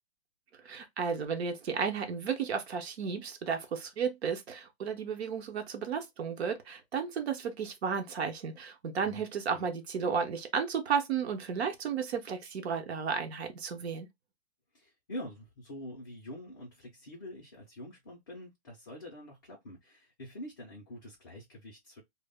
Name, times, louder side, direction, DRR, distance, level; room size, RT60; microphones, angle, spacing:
voice 1, 0.6-14.1, right 6 dB, 80° right, 0.8 m, -33 dB
voice 2, 14.7-22.0, left 1 dB, 20° left, 0.3 m, -45 dB
2.1 x 2.0 x 3.4 m
hypercardioid pair, 160°, 32 cm